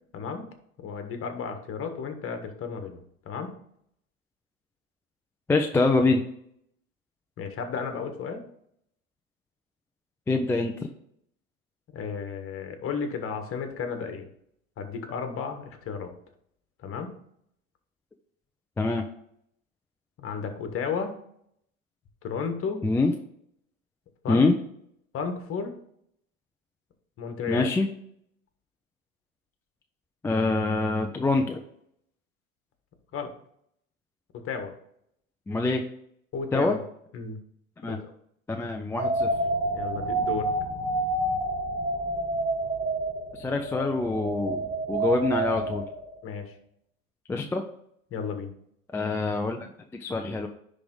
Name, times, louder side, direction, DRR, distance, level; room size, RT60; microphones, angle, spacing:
voice 1, 0.1-0.5 0.8-3.6 7.4-8.4 11.9-14.3 14.8-16.1 16.8-17.2 20.2-21.1 22.2-22.8 24.2-24.4 25.1-25.7 27.2-27.7 33.1-33.3 34.3-34.7 36.3-36.8 37.1-37.4 37.8-38.0 39.7-40.5 46.2-46.5 48.1-48.5, left 5 dB, 30° left, 6 dB, 1.5 m, -33 dB
voice 2, 5.5-6.2 10.3-10.7 18.8-19.1 22.8-23.1 24.3-24.6 27.5-27.9 30.2-31.6 35.5-35.8 36.5-36.8 37.8-38.0 38.5-39.3 43.3-45.9 47.3-47.6 48.9-49.7 49.9-50.5, left 3 dB, 5° left, 3 dB, 0.4 m, -25 dB
sound 1, 39.0-46.3, right 2 dB, 15° right, 1.5 m, -29 dB
10.5 x 3.6 x 3.9 m, 0.70 s
hypercardioid pair, 90°, 41 cm